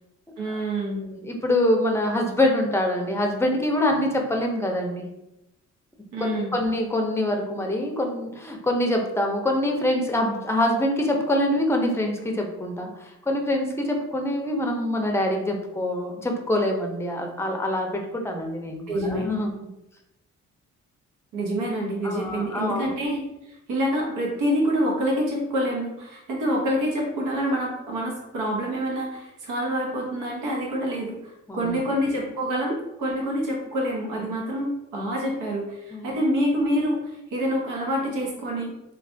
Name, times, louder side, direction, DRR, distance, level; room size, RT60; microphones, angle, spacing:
voice 1, 0.4-1.1 6.1-6.5 18.9-19.2 21.3-23.2 23.7-38.7, equal, 85° right, -2 dB, 0.9 m, -26 dB
voice 2, 1.0-5.0 6.2-12.9 13.3-19.5 22.0-22.9 31.5-31.8 35.9-36.2, left 1 dB, 10° left, 2 dB, 0.5 m, -25 dB
3.2 x 2.3 x 2.6 m, 0.89 s
cardioid pair, 90°, 30 cm